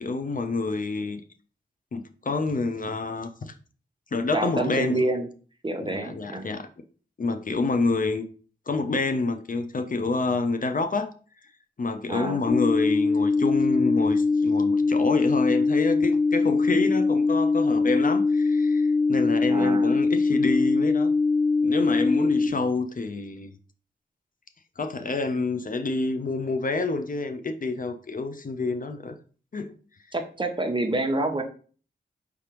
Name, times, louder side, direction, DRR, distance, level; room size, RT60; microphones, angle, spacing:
voice 1, 0.0-1.2 1.9-3.5 4.1-5.0 5.8-6.7 7.2-8.2 8.7-11.1 11.8-21.1 21.6-23.5 24.8-29.1 29.5-29.7, left 3 dB, 45° left, 8 dB, 0.6 m, -28 dB
voice 2, 4.3-5.3 5.6-6.5 12.1-12.4 19.5-20.0 30.1-31.4, right 2 dB, 25° right, 4 dB, 0.9 m, -27 dB
sound 1, 12.5-22.5, left 4 dB, 25° left, 2.4 m, -22 dB
4.9 x 3.3 x 2.9 m, 0.40 s
cardioid pair, 55°, 19 cm